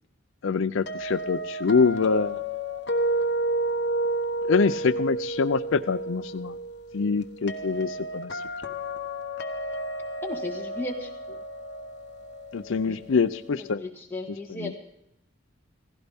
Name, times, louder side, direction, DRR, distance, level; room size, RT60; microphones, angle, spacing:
voice 1, 0.4-2.4 4.5-6.6 6.9-8.4 12.5-13.8 14.5-14.7, left 5 dB, 70° left, 12 dB, 0.5 m, -25 dB
sound 1, 0.9-13.7, right 1 dB, 55° left, 1.1 m, -31 dB
voice 2, 10.2-11.1 12.8-13.0 13.5-14.7, left 2 dB, 10° left, -1 dB, 1.8 m, -35 dB
16.5 x 15.5 x 3.5 m, 0.83 s
head